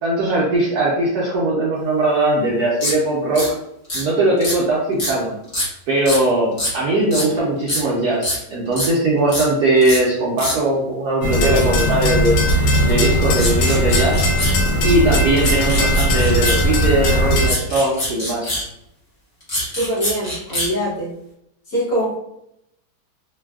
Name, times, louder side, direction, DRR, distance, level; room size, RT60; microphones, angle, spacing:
voice 1, 0.0-3.5 3.9-5.3 5.9-12.4 12.8-14.3 14.8-18.6, right 2 dB, 70° right, -5 dB, 0.9 m, -19 dB
sound 1, 2.8-2.9 3.3-3.5 3.9-4.0 4.4-4.6 5.0-5.1 5.5-5.7 6.0-6.2 6.6-6.7 7.1-7.3 7.7-7.8 8.2-8.4 8.7-8.9 9.3-9.4 9.8-10.0 10.4-10.6 13.4-14.6 15.4-16.6 17.4-18.6 19.4-20.7, left 1 dB, 30° left, 0.8 m, -24 dB
sound 2, 11.2-17.5, equal, 75° left, 1.3 m, -18 dB
voice 2, 19.8-21.1 21.7-22.2, equal, 60° left, -6 dB, 1.1 m, -23 dB
3.3 x 2.2 x 2.2 m, 0.78 s
omnidirectional pair, 2.2 m